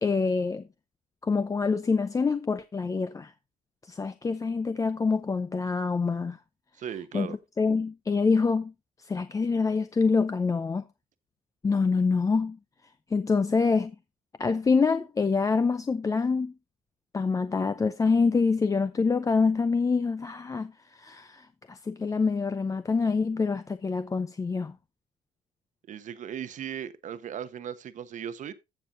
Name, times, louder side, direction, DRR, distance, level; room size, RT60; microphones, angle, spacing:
voice 1, 0.0-0.6 1.2-3.3 3.9-6.4 7.1-8.7 9.0-10.8 11.6-12.6 13.1-14.0 14.4-16.5 17.1-24.7, left 4 dB, 20° left, 0.5 m, -26 dB
voice 2, 6.8-7.4 25.9-28.5, right 9 dB, 55° right, 1.0 m, -37 dB
14.5 x 7.0 x 2.6 m
cardioid pair, 125°, 16 cm